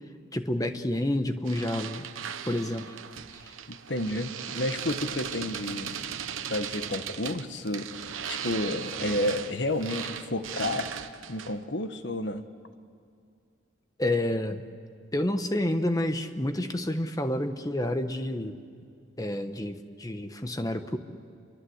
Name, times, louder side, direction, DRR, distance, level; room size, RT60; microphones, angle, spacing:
voice 1, 0.3-2.1 2.5-2.9 14.0-14.6 15.1-18.6 19.2-21.0, left 1 dB, 20° left, 8 dB, 1.1 m, -29 dB
sound 1, 1.5-11.7, right 8 dB, 90° right, 1.1 m, -37 dB
voice 2, 3.7-6.1 6.5-10.9 11.3-12.4, left 1 dB, 60° left, 8 dB, 1.4 m, -31 dB
28.0 x 23.5 x 8.1 m, 2.3 s
head